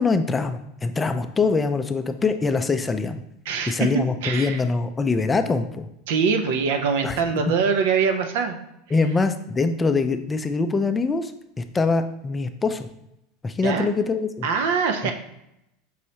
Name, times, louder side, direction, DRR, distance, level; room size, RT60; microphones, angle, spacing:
voice 1, 0.0-3.2 3.7-5.9 7.0-7.2 8.9-11.3 11.6-12.9 13.4-14.5, left 4 dB, 20° left, 8 dB, 0.4 m, -23 dB
voice 2, 3.5-3.9 4.2-4.6 6.1-8.6 13.6-13.9 14.4-15.1, right 5 dB, 70° right, 6 dB, 0.6 m, -23 dB
5.5 x 3.0 x 2.8 m, 0.83 s
hypercardioid pair, 95°, 0 cm